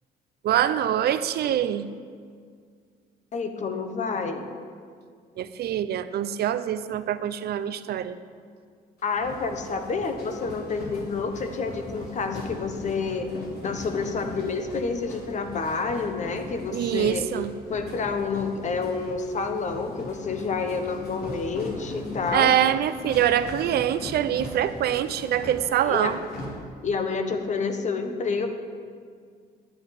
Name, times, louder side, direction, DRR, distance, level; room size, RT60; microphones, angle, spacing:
voice 1, 0.4-1.9 5.4-8.2 16.7-17.5 22.3-26.2, right 10 dB, 70° right, 13 dB, 0.7 m, -24 dB
voice 2, 3.3-4.5 9.0-13.3 13.6-17.3 17.7-22.5 24.8-25.0 25.8-26.1 26.8-28.5, left 4 dB, 45° left, 7 dB, 1.3 m, -29 dB
sound 1, 9.0-26.4, left 1 dB, 65° left, 3.7 m, -40 dB
9.7 x 8.5 x 9.9 m, 2.1 s
cardioid pair, 110°, 17 cm